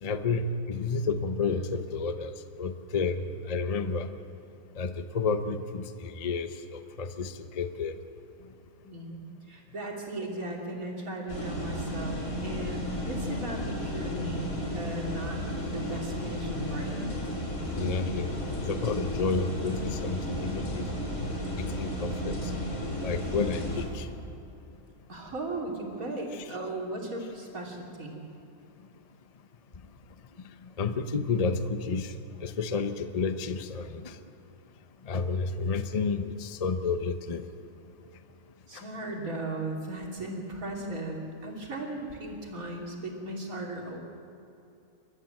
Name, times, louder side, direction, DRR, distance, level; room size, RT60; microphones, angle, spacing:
voice 1, 0.0-3.2 3.5-4.1 4.8-8.0 17.7-18.3 18.6-20.8 21.6-22.5 23.0-24.1 26.3-26.5 30.6-32.1 32.4-34.2 35.0-37.4 38.7-38.8, left 4 dB, 35° left, 9 dB, 0.7 m, -31 dB
voice 2, 8.8-15.4 15.7-17.3 25.1-28.2 38.7-44.0, right 2 dB, 70° right, -1 dB, 3.5 m, -37 dB
sound 1, 11.3-23.9, left 1 dB, 55° left, 3.7 m, -33 dB
28.5 x 13.5 x 7.8 m, 2.7 s
omnidirectional pair, 1.5 m